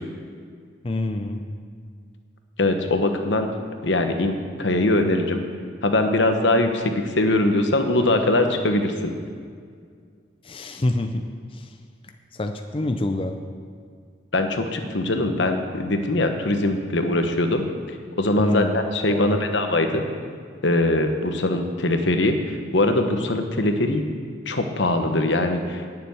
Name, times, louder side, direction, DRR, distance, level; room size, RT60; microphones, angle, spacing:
voice 1, 0.8-1.6 10.4-11.3 11.5-11.8 12.3-13.4 18.4-18.8 19.1-19.4, left 1 dB, 30° left, 5 dB, 0.5 m, -26 dB
voice 2, 2.6-3.5 3.8-5.4 5.8-9.1 14.3-17.7 18.2-20.0 20.6-24.0 24.5-25.9, left 2 dB, 65° left, 6 dB, 1.1 m, -22 dB
10.0 x 7.0 x 9.2 m, 2.1 s
head